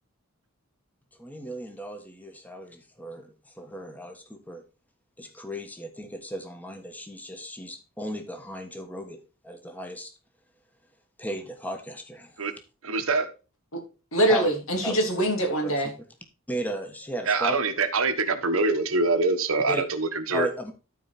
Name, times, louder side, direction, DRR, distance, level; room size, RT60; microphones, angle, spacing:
voice 1, 1.2-4.6 5.2-9.2 9.4-10.1 11.2-12.4 14.3-14.5 14.8-15.0 15.6-15.9 16.5-17.6 19.7-19.8 20.3-20.7, equal, 10° left, 5 dB, 1.4 m, -35 dB
voice 2, 12.8-13.3 17.3-20.5, right 3 dB, 75° right, 8 dB, 1.4 m, -24 dB
voice 3, 14.1-15.9, right 1 dB, 70° left, 3 dB, 3.0 m, -24 dB
13.0 x 4.7 x 4.3 m, 0.32 s
head